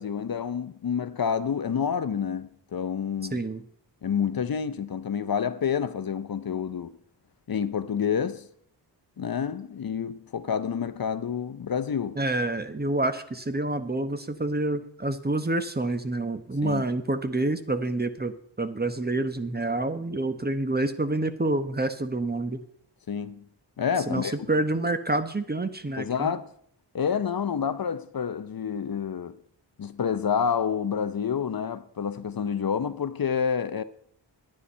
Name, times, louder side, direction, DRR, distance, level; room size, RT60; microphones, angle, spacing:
voice 1, 0.0-3.4 4.0-7.0 7.5-8.5 9.2-12.2 16.6-16.8 23.1-23.4 23.8-24.3 26.0-26.5 26.9-29.4 29.8-33.8, left 7 dB, 55° left, 0.7 m, -28 dB
voice 2, 3.3-3.6 12.2-18.3 18.6-22.6 24.1-26.3, right 2 dB, 20° right, 1.0 m, -28 dB
11.5 x 9.8 x 5.5 m
wide cardioid pair, 95°, 43 cm